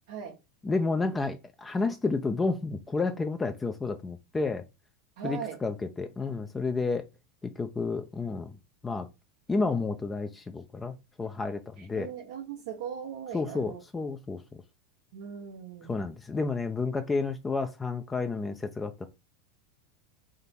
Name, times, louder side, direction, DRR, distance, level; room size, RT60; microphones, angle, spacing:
voice 1, 0.1-0.4 5.2-5.6 11.8-13.8 15.1-16.0, right 8 dB, 70° right, 0.8 m, -39 dB
voice 2, 0.6-4.6 5.2-7.0 7.4-8.5 8.8-9.1 9.5-12.1 13.3-14.4 15.9-19.1, left 3 dB, 15° left, 0.5 m, -31 dB
3.6 x 2.9 x 4.2 m
hypercardioid pair, 90°, 0 cm